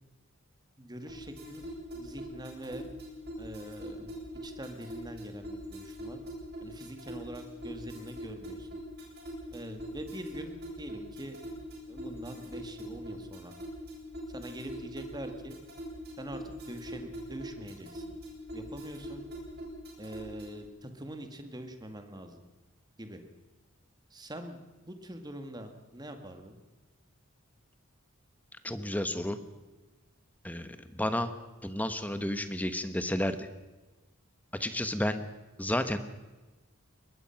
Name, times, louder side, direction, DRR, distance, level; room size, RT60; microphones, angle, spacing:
voice 1, 0.8-1.6 1.9-2.9 3.4-4.1 4.4-6.2 6.6-8.7 9.5-11.4 11.9-13.5 14.3-15.6 16.2-18.0 18.5-19.3 20.0-22.4 23.0-23.2 24.1-24.6 24.9-26.6, right 1 dB, 20° right, 6 dB, 2.0 m, -44 dB
sound 1, 1.1-20.7, equal, 50° right, 7.4 m, -43 dB
voice 2, 28.6-29.4 30.4-31.3 31.6-33.5 34.5-35.2 35.6-36.0, left 1 dB, 5° left, 10 dB, 1.1 m, -31 dB
22.5 x 20.0 x 5.9 m, 1.2 s
head